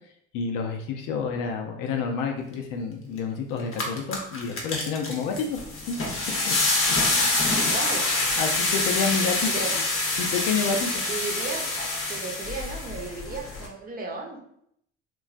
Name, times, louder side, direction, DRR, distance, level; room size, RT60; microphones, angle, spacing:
voice 1, 0.3-5.6 5.9-6.0 6.4-6.6 7.1-7.4 7.7-7.9 8.4-9.8 10.2-11.0, left 5 dB, 65° left, 3 dB, 0.6 m, -29 dB
sound 1, 3.2-3.3 3.6-13.7, left 2 dB, 40° left, 0.8 m, -26 dB
voice 2, 7.7-8.0 9.5-9.7 11.0-11.6 12.1-14.4, right 4 dB, 25° right, -1 dB, 0.8 m, -34 dB
3.0 x 2.2 x 2.4 m, 0.70 s
hypercardioid pair, 65°, 35 cm